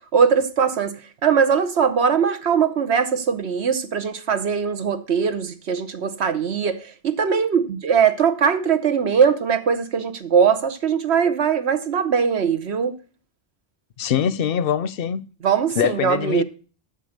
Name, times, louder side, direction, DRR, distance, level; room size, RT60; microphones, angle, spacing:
voice 1, 0.1-12.9 15.4-16.4, right 6 dB, 70° right, 1.2 m, -21 dB
voice 2, 14.0-15.2 15.8-16.4, left 8 dB, 60° left, 0.8 m, -23 dB
9.8 x 7.0 x 6.5 m
omnidirectional pair, 1.2 m